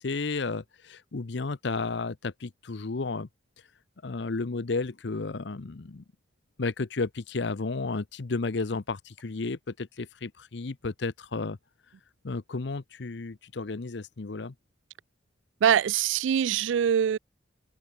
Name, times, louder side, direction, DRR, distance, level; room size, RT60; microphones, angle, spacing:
voice 1, 0.0-3.3 4.0-6.0 6.6-11.6 12.2-14.5, left 3 dB, 65° left, 0.7 m, -32 dB
voice 2, 15.6-17.2, right 8 dB, 75° right, 0.3 m, -23 dB
open air
head